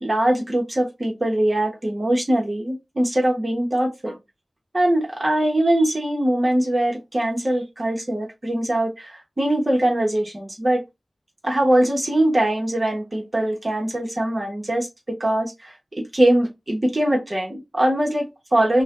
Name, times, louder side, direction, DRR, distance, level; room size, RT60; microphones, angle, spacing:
voice 1, 0.0-4.2 4.7-10.8 11.4-18.8, right 1 dB, 40° right, 1.2 m, -22 dB
6.0 x 2.3 x 2.4 m
wide cardioid pair, 55°, 0 cm